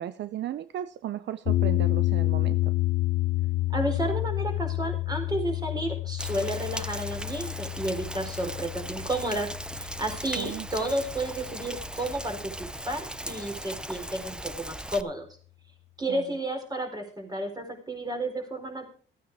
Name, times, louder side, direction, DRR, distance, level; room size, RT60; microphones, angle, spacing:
voice 1, 0.0-2.7 10.4-10.7 16.1-16.4, right 11 dB, 65° right, 14 dB, 0.6 m, -35 dB
sound 1, 1.4-11.7, left 17 dB, 75° left, 1.0 m, -29 dB
voice 2, 3.7-9.5 9.8-15.3 16.0-18.9, right 1 dB, 20° right, 4 dB, 4.3 m, -32 dB
Rain, 6.2-15.0, right 1 dB, 5° right, 0.6 m, -38 dB
14.5 x 9.3 x 4.7 m, 0.43 s
cardioid pair, 90°, 20 cm